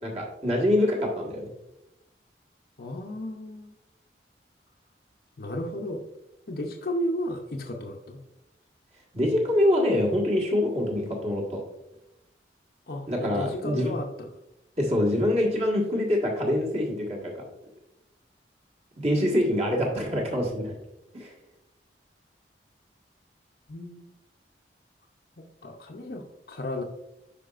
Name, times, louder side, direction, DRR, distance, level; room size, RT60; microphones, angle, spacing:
voice 1, 0.0-1.5 9.1-11.6 13.1-13.9 14.8-17.4 19.0-20.7 21.1-21.3, left 1 dB, 35° right, -1 dB, 1.6 m, -25 dB
voice 2, 2.8-3.8 5.4-6.0 6.5-8.2 12.9-14.3 23.7-24.1 25.6-26.8, left 1 dB, 60° left, 0 dB, 0.6 m, -33 dB
9.9 x 5.0 x 2.4 m, 0.91 s
head